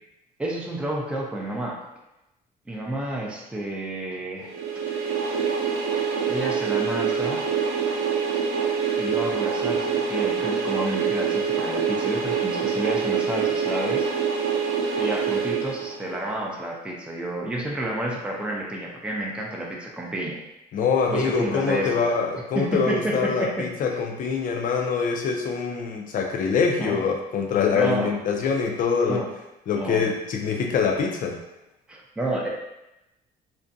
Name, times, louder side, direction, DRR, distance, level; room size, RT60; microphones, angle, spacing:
voice 1, 0.4-1.8 2.7-4.5 6.3-7.4 9.0-14.1 15.0-20.4 21.1-22.0 22.5-23.7 26.8-27.0 27.7-28.1 29.1-29.3 29.8-30.1 31.9-32.5, right 1 dB, 5° right, -2 dB, 0.4 m, -30 dB
sound 1, 4.5-16.3, right 6 dB, 80° right, 0.6 m, -25 dB
voice 2, 20.7-29.3 29.7-31.4, left 5 dB, 55° left, 1 dB, 0.5 m, -24 dB
2.5 x 2.1 x 2.5 m, 0.93 s
cardioid pair, 110°, 17 cm